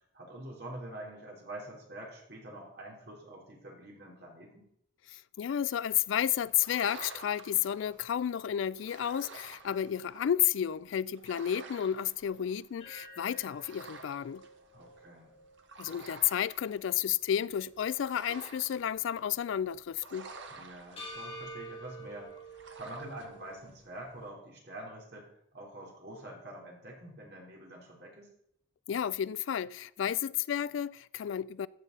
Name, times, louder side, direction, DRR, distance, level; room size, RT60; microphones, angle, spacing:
voice 1, 0.1-4.7 14.7-15.3 20.5-28.3, right 1 dB, 55° right, 3.6 m, -46 dB
voice 2, 5.1-14.4 15.8-20.3 28.9-31.7, left 10 dB, 75° left, 0.3 m, -32 dB
sound 1, 5.7-24.3, right 3 dB, 70° right, 1.3 m, -52 dB
sound 2, 12.8-17.1 17.5-17.6 21.0-23.6, right 1 dB, 30° left, 3.1 m, -49 dB
14.5 x 8.0 x 4.0 m
head